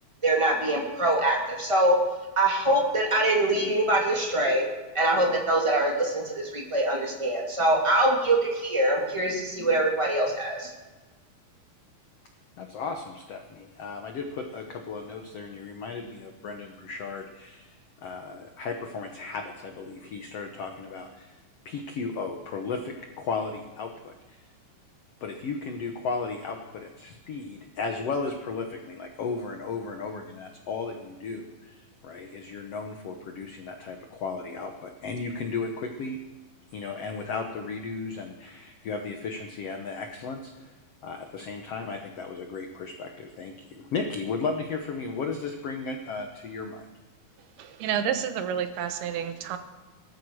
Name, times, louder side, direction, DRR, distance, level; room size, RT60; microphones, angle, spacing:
voice 1, 0.2-2.0 2.4-4.7 4.9-10.7, right 1 dB, 10° right, -1 dB, 2.0 m, -24 dB
voice 2, 12.6-21.3 21.6-24.4 25.2-36.2 36.7-40.7 41.0-46.8, left 4 dB, 75° left, 4 dB, 1.4 m, -35 dB
voice 3, 47.6-49.6, right 8 dB, 85° right, 8 dB, 3.0 m, -29 dB
18.0 x 14.0 x 4.8 m, 1.2 s
omnidirectional pair, 4.4 m